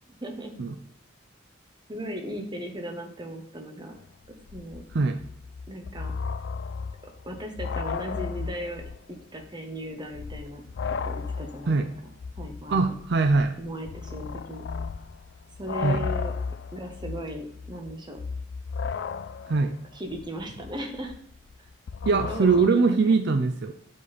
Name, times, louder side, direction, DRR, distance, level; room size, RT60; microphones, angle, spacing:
voice 1, 0.2-0.5 1.9-4.0 4.5-4.8 5.7-6.1 7.2-8.8 9.1-10.6 10.9-11.9 12.4-12.9 13.6-14.7 15.6-16.3 16.7-18.2 19.9-21.1 22.0-22.8, equal, 25° right, 4 dB, 1.0 m, -37 dB
sound 1, 4.0-4.1 4.2-9.1 9.4-9.5 10.0-22.7, left 5 dB, 60° left, 0.3 m, -35 dB
voice 2, 12.7-13.6 15.8-16.0 19.5-19.7 22.1-23.7, right 4 dB, 60° right, 7 dB, 0.5 m, -22 dB
6.7 x 5.1 x 4.1 m, 0.69 s
head